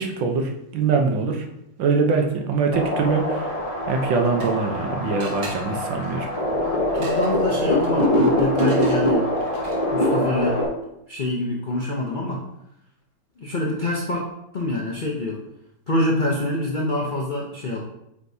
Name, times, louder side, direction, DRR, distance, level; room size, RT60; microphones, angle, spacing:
voice 1, 0.0-1.4 1.8-3.5 3.9-6.3, right 4 dB, 80° right, 3 dB, 1.6 m, -23 dB
sound 1, 2.7-10.7, left 1 dB, 30° left, 0.7 m, -23 dB
sound 2, 3.9-4.8 5.2-10.0, right 3 dB, 55° right, 1.4 m, -43 dB
voice 2, 6.6-9.3 9.9-10.6 11.1-12.4 13.4-14.3 14.5-15.4 15.9-17.8, left 1 dB, 60° left, -2 dB, 0.5 m, -26 dB
8.3 x 4.4 x 2.7 m, 0.82 s
omnidirectional pair, 2.0 m